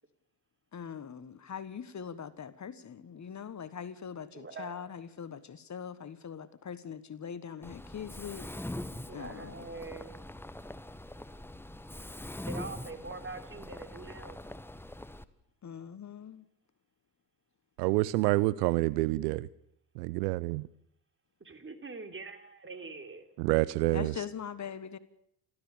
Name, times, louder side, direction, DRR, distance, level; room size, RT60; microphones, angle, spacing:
voice 1, 0.7-8.5 9.1-9.7 15.6-16.4 23.9-25.0, left 7 dB, 35° left, 1.5 m, -42 dB
voice 2, 4.3-5.0 9.1-10.3 12.5-14.5 21.4-23.3, right 3 dB, 25° right, 3.6 m, -44 dB
Mechanisms, 7.6-15.2, left 1 dB, 5° left, 1.2 m, -43 dB
voice 3, 17.8-19.5 20.0-20.6 23.4-24.1, right 20 dB, 80° right, 0.7 m, -27 dB
29.5 x 13.0 x 7.1 m
hypercardioid pair, 60°, 47 cm